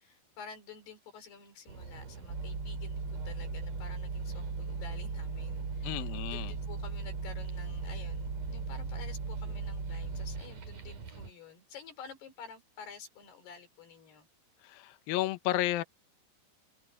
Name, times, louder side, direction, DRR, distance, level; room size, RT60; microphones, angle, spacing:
voice 1, 0.0-14.3, left 6 dB, 55° left, 5.9 m, -50 dB
sound 1, 1.7-11.3, right 5 dB, 45° right, 4.5 m, -47 dB
sound 2, 2.3-10.4, right 4 dB, 30° right, 3.7 m, -37 dB
voice 2, 5.8-6.5 14.6-15.8, left 15 dB, 85° left, 2.1 m, -32 dB
open air
omnidirectional pair, 5.7 m